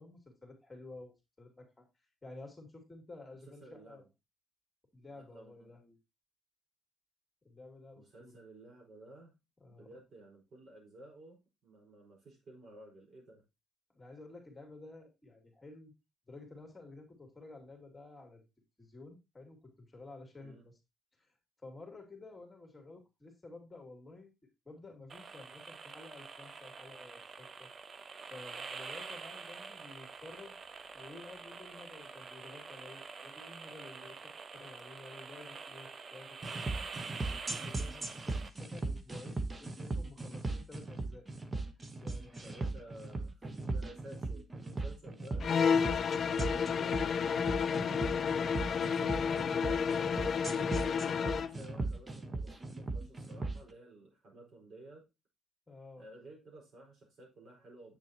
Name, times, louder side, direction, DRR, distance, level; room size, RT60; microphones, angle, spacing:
voice 1, 0.0-1.9 2.2-4.1 4.9-6.0 7.4-8.4 9.6-9.9 13.9-15.9 16.3-18.5 18.8-20.7 21.2-21.3 21.6-24.3 24.6-27.7 28.3-30.5 30.9-36.7 37.3-41.3 41.7-42.6 42.8-42.9 44.8-45.5 55.7-56.0, left 2 dB, 20° left, 2 dB, 2.6 m, -52 dB
voice 2, 3.5-4.1 5.1-5.7 8.0-9.3 9.7-13.4 20.4-20.7 42.4-45.5 46.4-55.1 56.0-58.0, right 1 dB, 60° right, -1 dB, 5.0 m, -54 dB
sound 1, 25.1-38.5, right 5 dB, 45° right, 0.6 m, -46 dB
sound 2, 36.4-53.6, right 2 dB, 30° right, 1.1 m, -38 dB
sound 3, 45.4-51.6, left 6 dB, 55° left, 0.4 m, -31 dB
8.2 x 6.8 x 2.9 m, 0.23 s
cardioid pair, 90°, 0 cm